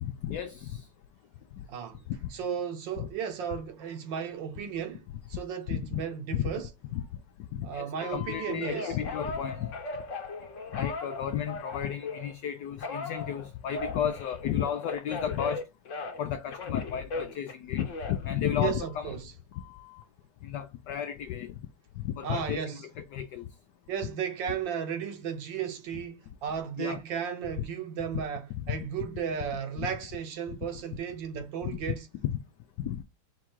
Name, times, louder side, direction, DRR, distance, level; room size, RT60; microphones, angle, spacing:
voice 1, 0.0-0.9 1.5-1.6 2.1-2.3 3.0-3.1 5.7-6.0 6.3-6.5 6.9-7.0 7.5-9.7 10.7-15.6 16.2-19.2 20.4-21.6 22.0-23.5 26.8-27.0 28.5-28.8 29.8-29.9 30.5-30.6 31.6-31.8 32.8-33.0, left 10 dB, 80° left, 0.9 m, -33 dB
voice 2, 1.7-2.0 2.3-6.7 7.6-9.0 18.6-19.3 22.2-22.8 23.9-32.1, right 8 dB, 65° right, 1.4 m, -34 dB
Telephone, 8.0-12.3 12.8-16.3 16.5-19.0 19.5-20.0, left 3 dB, 50° left, 1.0 m, -39 dB
4.5 x 2.4 x 4.4 m
omnidirectional pair, 2.4 m